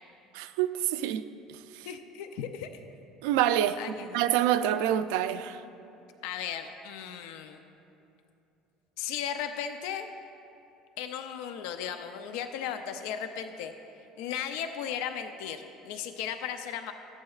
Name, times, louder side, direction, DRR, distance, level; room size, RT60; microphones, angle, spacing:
voice 1, 0.3-1.2 1.5-1.9 3.2-3.8 4.1-5.6, right 11 dB, 90° right, 11 dB, 0.3 m, -27 dB
voice 2, 1.8-2.7 3.8-4.3 6.2-7.6 9.0-10.1 11.0-13.7 14.2-16.9, left 8 dB, 80° left, 8 dB, 0.4 m, -36 dB
14.0 x 10.5 x 2.4 m, 2.8 s
cardioid pair, 175°, 0 cm